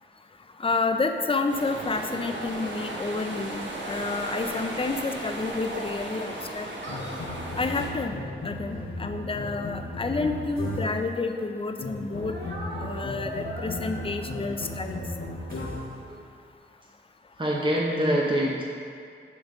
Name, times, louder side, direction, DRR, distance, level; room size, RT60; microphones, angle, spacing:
voice 1, 0.6-7.0 7.6-8.2 8.4-12.4 12.8-15.0, left 3 dB, 25° left, 6 dB, 0.5 m, -30 dB
sound 1, 1.5-7.9, right 1 dB, 65° right, 1.0 m, -35 dB
sound 2, 6.9-11.1 11.8-16.0, left 2 dB, 85° left, 0.9 m, -35 dB
Speech, 10.0-11.6 12.2-16.2, right 1 dB, 50° right, 1.6 m, -42 dB
voice 2, 17.4-18.6, equal, 25° right, -4 dB, 0.8 m, -24 dB
7.3 x 4.0 x 4.8 m, 2.3 s
cardioid pair, 60°, 20 cm